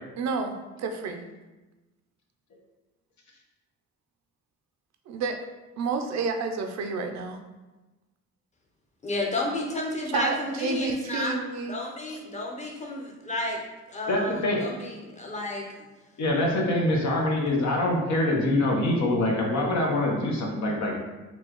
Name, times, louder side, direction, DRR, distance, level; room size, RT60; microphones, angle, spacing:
voice 1, 0.2-1.2 5.1-5.4 5.8-7.4 10.1-11.7, right 4 dB, 65° right, 5 dB, 0.5 m, -30 dB
voice 2, 9.0-11.4 11.7-13.6 13.9-14.3 14.6-15.7, left 1 dB, 25° left, 0 dB, 0.8 m, -31 dB
voice 3, 14.1-14.6 16.2-21.1, left 1 dB, 65° left, -1 dB, 1.0 m, -24 dB
4.4 x 2.3 x 2.9 m, 1.1 s
cardioid pair, 90°, 30 cm